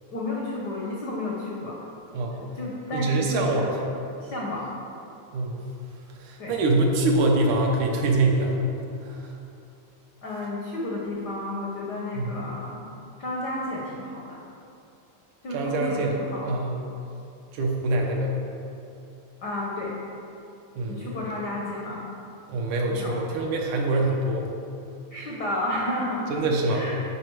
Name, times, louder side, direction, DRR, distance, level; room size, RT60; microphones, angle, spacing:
voice 1, 0.1-1.8 2.3-3.7 4.2-4.7 6.4-6.6 10.2-12.8 13.2-14.4 15.4-16.5 19.4-19.9 20.9-22.0 22.9-23.2 25.1-26.3 26.7-27.0, left 1 dB, 75° left, -4 dB, 0.9 m, -32 dB
voice 2, 2.9-3.8 5.3-5.6 6.2-9.3 12.1-12.4 15.5-16.2 16.4-16.8 17.5-18.4 20.8-21.1 22.5-24.5 26.3-26.8, right 2 dB, 75° right, 1 dB, 2.4 m, -24 dB
11.0 x 5.0 x 4.7 m, 2.7 s
omnidirectional pair, 3.5 m